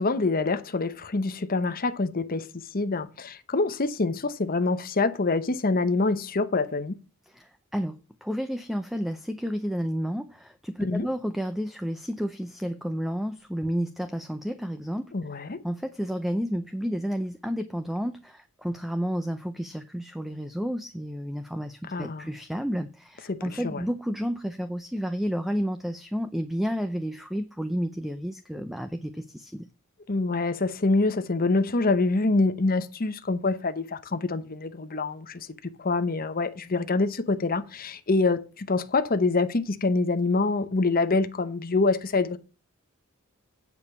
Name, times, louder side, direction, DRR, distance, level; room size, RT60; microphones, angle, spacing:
voice 1, 0.0-2.5 2.7-7.0 10.8-11.1 15.1-15.6 21.9-22.3 23.3-23.8 30.1-35.5 35.8-42.4, left 3 dB, 40° left, 0.8 m, -25 dB
voice 2, 7.3-15.1 15.6-29.7, equal, ahead, 0.5 m, -31 dB
8.8 x 4.9 x 6.9 m
head